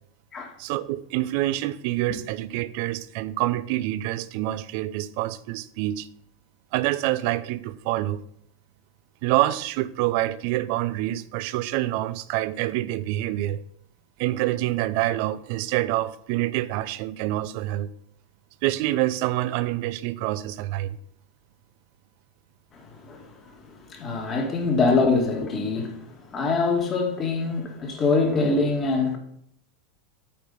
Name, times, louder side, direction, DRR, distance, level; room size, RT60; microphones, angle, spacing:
voice 1, 0.6-6.1 6.7-8.2 9.2-13.6 14.2-17.9 18.6-21.0, right 15 dB, 60° right, 0.5 m, -26 dB
voice 2, 22.7-29.2, left 3 dB, 35° left, 2.0 m, -24 dB
8.4 x 4.4 x 5.4 m
hypercardioid pair, 100°, 0 cm